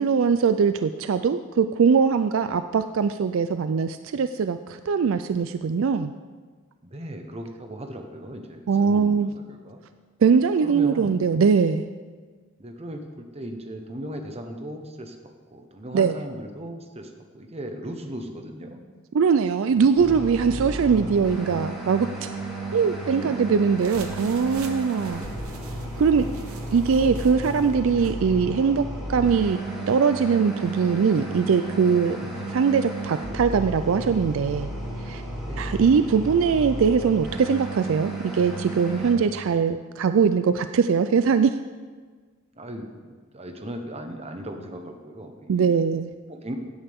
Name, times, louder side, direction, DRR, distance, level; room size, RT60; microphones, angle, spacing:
voice 1, 0.0-6.1 8.7-9.3 10.2-11.9 15.9-16.2 19.1-22.3 22.7-25.2 26.0-26.3 26.7-28.8 29.1-29.6 29.9-32.2 32.5-34.7 35.0-35.2 35.6-41.5 45.5-46.1, right 6 dB, 65° right, 10 dB, 0.4 m, -21 dB
voice 2, 6.8-9.8 10.6-11.2 12.6-18.8 21.5-21.6 22.7-22.9 23.2-23.4 25.0-25.3 32.2-32.6 35.4-35.8 42.5-45.7 46.3-46.5, right 1 dB, 30° right, 4 dB, 1.1 m, -38 dB
sound 1, 20.0-39.1, right 1 dB, ahead, 2.8 m, -33 dB
sound 2, 23.7-28.2, right 4 dB, 85° right, 1.1 m, -45 dB
16.5 x 8.9 x 3.6 m, 1.5 s
head